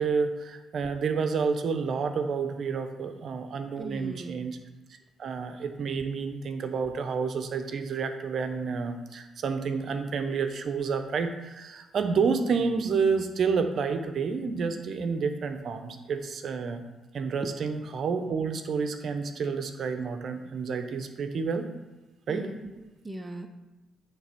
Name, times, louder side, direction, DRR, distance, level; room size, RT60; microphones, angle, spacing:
voice 1, 0.0-4.6 5.2-16.8 17.1-21.7 22.3-22.5, right 5 dB, 55° right, 7 dB, 0.8 m, -29 dB
voice 2, 3.8-4.4 22.3-23.5, right 2 dB, 15° right, 5 dB, 0.6 m, -39 dB
9.3 x 3.4 x 5.8 m, 1.1 s
cardioid pair, 90°, 0 cm